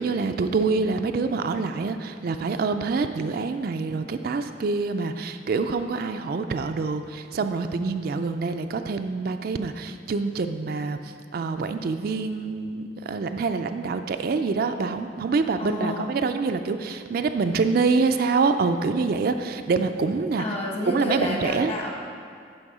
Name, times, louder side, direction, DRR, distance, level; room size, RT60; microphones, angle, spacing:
voice 1, 0.0-11.0 11.3-20.4 20.9-21.7, right 4 dB, 55° right, 7 dB, 0.4 m, -26 dB
voice 2, 15.6-16.1 20.4-21.9, left 1 dB, 35° left, -1 dB, 1.3 m, -30 dB
11.5 x 4.6 x 4.8 m, 2.2 s
head